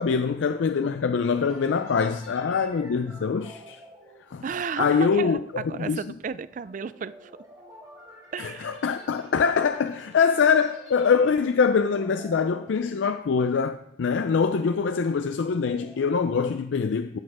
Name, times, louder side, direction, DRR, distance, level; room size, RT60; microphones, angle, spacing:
voice 1, 0.0-3.8 4.3-4.4 4.8-5.4 5.8-6.0 8.4-17.2, left 5 dB, 90° left, 0.4 m, -24 dB
sound 1, 1.2-13.7 14.1-14.3 14.8-16.1, equal, 20° right, 3.7 m, -51 dB
voice 2, 4.4-7.3 8.3-8.7, right 6 dB, 45° right, 0.3 m, -33 dB
12.0 x 6.4 x 4.8 m
head